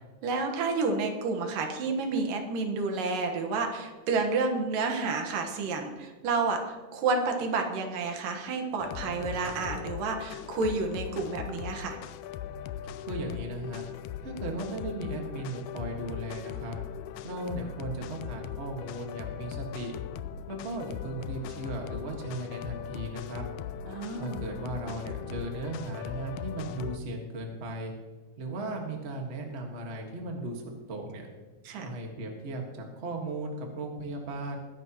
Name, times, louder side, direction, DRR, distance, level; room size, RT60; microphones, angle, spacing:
voice 1, 0.2-12.0 23.9-24.4 31.6-31.9, right 4 dB, 85° right, 4 dB, 3.0 m, -30 dB
sound 1, 8.8-27.0, left 9 dB, 80° left, 1.8 m, -39 dB
voice 2, 13.0-13.9 14.2-16.8 17.2-20.0 20.5-23.4 24.2-27.9 28.4-31.3 31.8-34.6, right 2 dB, 35° right, 1 dB, 1.1 m, -36 dB
21.0 x 11.0 x 3.0 m, 1.3 s
omnidirectional pair, 3.8 m